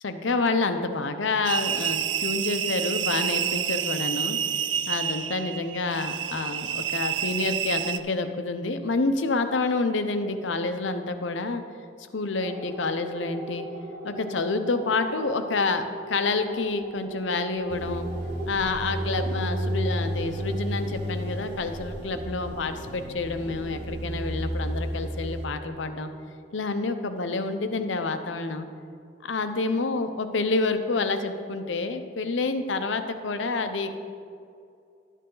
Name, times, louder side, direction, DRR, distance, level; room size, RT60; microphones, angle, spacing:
voice 1, 0.0-4.4 4.9-11.6 12.1-13.7 14.0-18.1 18.5-26.1 26.5-28.7 29.2-34.0, left 3 dB, 80° left, 8 dB, 0.7 m, -28 dB
sound 1, 1.4-8.0, right 9 dB, 80° right, 0.5 m, -28 dB
sound 2, 12.4-27.2, right 2 dB, 10° right, 2.5 m, -40 dB
sound 3, 17.7-25.4, equal, 60° right, 1.2 m, -32 dB
11.5 x 9.1 x 3.9 m, 2.4 s
head